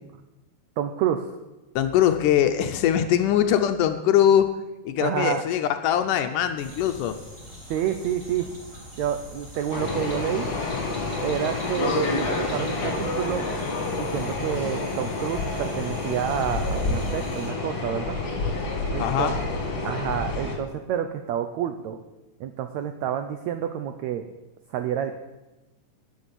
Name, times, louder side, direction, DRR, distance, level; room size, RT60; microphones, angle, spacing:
voice 1, 0.8-1.3 5.0-5.4 7.7-8.5 9.0-10.5 11.2-13.5 13.9-18.2 18.9-19.3 19.8-22.0 22.4-24.2 24.7-25.1, right 9 dB, 90° right, 8 dB, 1.5 m, -29 dB
voice 2, 1.8-4.5 4.8-7.1 19.0-19.4, left 10 dB, 75° left, 7 dB, 2.0 m, -22 dB
sound 1, 6.6-17.5, left 1 dB, 10° right, 2.8 m, -43 dB
sound 2, 9.7-20.6, left 3 dB, 40° left, 2.3 m, -28 dB
12.0 x 6.7 x 9.7 m, 1.1 s
omnidirectional pair, 4.1 m